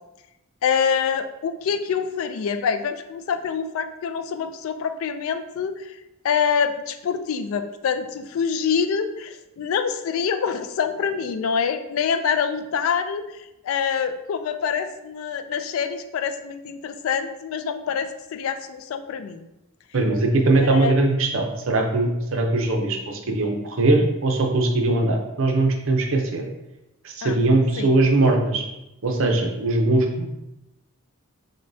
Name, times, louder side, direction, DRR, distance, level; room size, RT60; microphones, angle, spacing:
voice 1, 0.6-6.0 6.2-13.2 13.6-19.5 20.7-21.0 27.2-27.4 27.8-27.9, left 6 dB, 65° left, 8 dB, 0.3 m, -25 dB
voice 2, 19.9-26.4 27.0-28.6 29.0-30.2, right 2 dB, 60° right, 2 dB, 0.6 m, -20 dB
6.2 x 2.2 x 2.6 m, 0.94 s
head